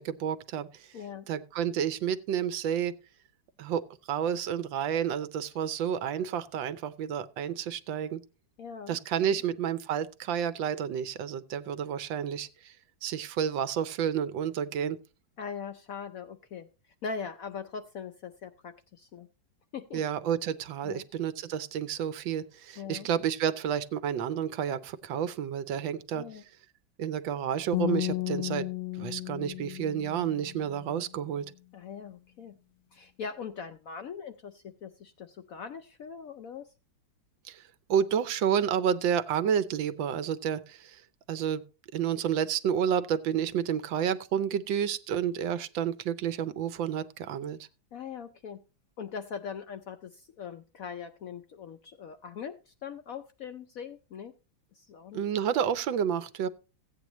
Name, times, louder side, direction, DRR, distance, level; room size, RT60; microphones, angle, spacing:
voice 1, 0.0-0.9 1.3-2.9 3.6-8.2 8.9-12.7 13.0-15.0 19.9-26.2 27.0-28.7 29.0-31.4 37.4-37.6 37.9-41.0 41.3-41.6 41.9-47.6 55.1-56.5, right 8 dB, 75° right, 1.4 m, -30 dB
voice 2, 0.9-1.3 8.6-9.0 9.3-9.4 15.4-19.3 19.7-20.0 20.8-21.0 22.8-23.1 26.1-26.4 31.7-32.5 32.9-36.7 47.9-48.6 49.0-54.3 54.7-55.2, left 6 dB, 70° left, 0.8 m, -41 dB
sound 1, 27.7-30.9, left 19 dB, 90° left, 1.6 m, -34 dB
15.5 x 8.8 x 3.0 m
omnidirectional pair, 2.1 m